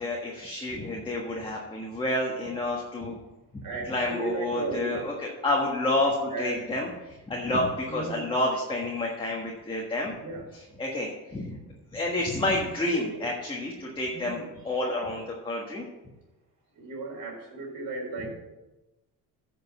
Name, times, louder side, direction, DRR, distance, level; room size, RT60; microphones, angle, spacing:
voice 1, 0.0-3.2 3.5-10.1 10.5-11.6 11.9-15.8, left 2 dB, 15° left, -2 dB, 1.5 m, -29 dB
voice 2, 3.6-4.9 6.3-6.6 7.9-8.3 10.2-10.5 12.9-13.3 14.1-14.5 16.8-18.3, right 3 dB, 60° right, -1 dB, 4.0 m, -35 dB
9.6 x 5.4 x 7.0 m, 1.0 s
cardioid pair, 125°, 36 cm